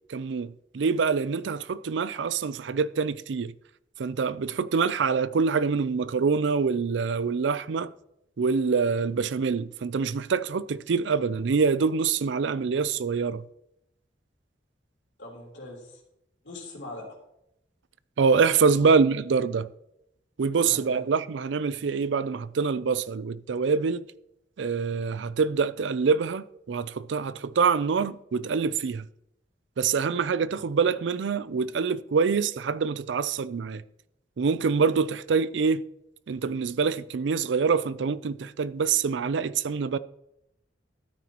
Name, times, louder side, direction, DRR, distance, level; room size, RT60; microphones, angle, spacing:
voice 1, 0.1-3.5 4.0-7.9 8.4-13.4 18.2-19.7 20.4-24.0 24.6-29.1 29.8-33.8 34.4-35.8 36.3-40.0, right 5 dB, 80° right, 0.4 m, -25 dB
voice 2, 15.2-16.0 16.4-17.1 18.7-18.9 20.6-21.1, left 2 dB, 80° left, 3.3 m, -42 dB
13.0 x 9.2 x 3.0 m
head